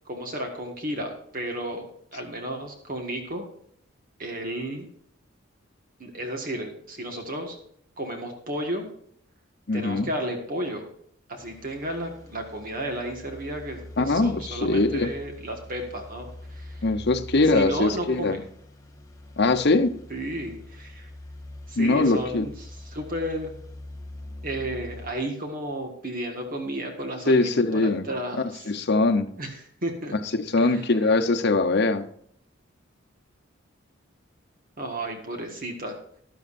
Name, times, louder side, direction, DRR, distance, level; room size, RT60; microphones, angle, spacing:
voice 1, 0.0-1.9 2.1-3.5 4.2-4.9 6.0-7.6 8.0-8.9 9.7-10.9 11.3-16.8 17.5-18.4 20.1-21.1 21.7-22.6 22.8-23.5 24.4-28.7 29.4-29.5 29.8-30.1 30.6-30.8 34.8-36.0, right 1 dB, 45° right, 3 dB, 1.7 m, -33 dB
voice 2, 9.7-10.1 14.0-15.1 16.8-18.4 19.4-20.0 21.8-22.5 27.3-28.1 28.4-29.3 30.3-32.0, left 3 dB, 55° left, 7 dB, 0.9 m, -22 dB
sound 1, 11.4-25.1, left 2 dB, 15° left, 1.5 m, -43 dB
13.0 x 12.0 x 2.6 m, 0.66 s
head